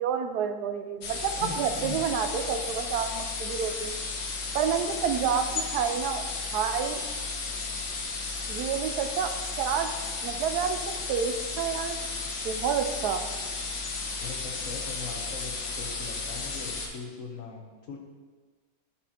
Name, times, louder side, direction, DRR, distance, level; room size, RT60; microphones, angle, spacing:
voice 1, 0.0-3.9 4.5-6.2 6.5-7.0 8.5-9.3 9.6-9.9 10.2-10.8 11.1-12.0 12.4-13.2, right 7 dB, 70° right, 7 dB, 1.0 m, -29 dB
sound 1, 1.0-16.9, left 4 dB, 80° left, 1.6 m, -34 dB
voice 2, 1.4-2.1 14.2-18.0, left 5 dB, 55° left, 1 dB, 1.1 m, -40 dB
11.0 x 4.3 x 3.0 m, 1.4 s
omnidirectional pair, 2.0 m